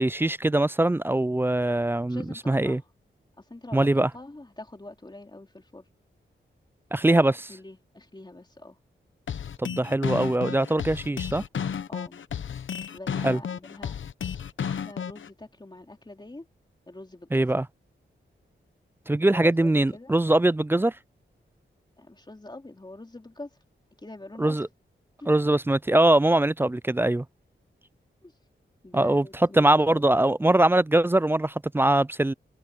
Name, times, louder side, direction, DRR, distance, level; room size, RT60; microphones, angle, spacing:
voice 1, 0.0-2.8 3.7-4.1 6.9-7.3 9.6-11.4 13.2-13.4 17.3-17.7 19.1-20.9 24.4-24.7 25.3-27.2 28.9-29.2 29.5-32.3, right 1 dB, 10° right, 0.3 m, -22 dB
voice 2, 2.1-2.9 3.4-5.9 7.1-8.8 11.9-12.2 12.8-14.0 14.7-16.5 16.9-17.5 19.3-20.1 22.0-23.6 24.0-24.6 25.2-25.3 28.2-28.4 28.8-30.0, left 2 dB, 20° left, 3.0 m, -44 dB
sound 1, 9.3-15.3, left 7 dB, 80° left, 0.8 m, -32 dB
wide cardioid pair, 75°, 20 cm